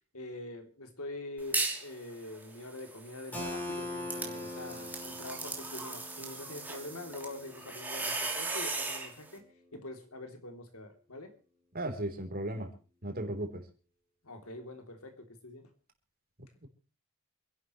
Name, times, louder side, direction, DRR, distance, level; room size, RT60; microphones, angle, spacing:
voice 1, 0.1-9.4 9.7-11.3 14.2-15.7, left 2 dB, 85° left, 6 dB, 3.3 m, -44 dB
sound 1, 1.4-1.9 2.3-9.1, right 3 dB, 10° right, 3.3 m, -37 dB
Keyboard (musical), 3.3-8.9, left 2 dB, 10° left, 5.1 m, -43 dB
voice 2, 11.7-12.7 13.0-13.6 16.6-16.7, right 1 dB, 45° right, 5 dB, 3.8 m, -36 dB
28.0 x 11.5 x 3.2 m, 0.37 s
head